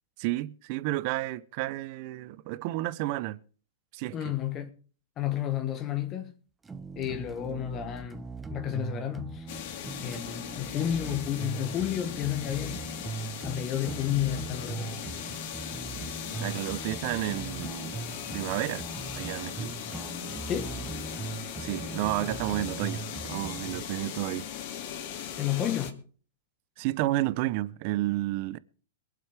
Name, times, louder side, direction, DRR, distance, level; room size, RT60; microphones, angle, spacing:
voice 1, 0.2-3.4 3.9-4.2 16.4-18.0 18.3-18.8 19.2-19.7 21.6-24.5 26.8-28.6, right 17 dB, 50° right, 0.7 m, -31 dB
voice 2, 4.1-4.7 5.2-6.3 7.0-8.2 8.5-9.5 10.0-12.8 13.4-15.0 20.5-20.8 25.4-26.0, left 11 dB, 30° left, 1.3 m, -31 dB
sound 1, 6.6-23.8, right 4 dB, 15° right, 0.8 m, -40 dB
sound 2, 9.5-25.9, left 9 dB, 55° left, 2.4 m, -39 dB
22.0 x 7.8 x 5.0 m
hypercardioid pair, 125°, 0 cm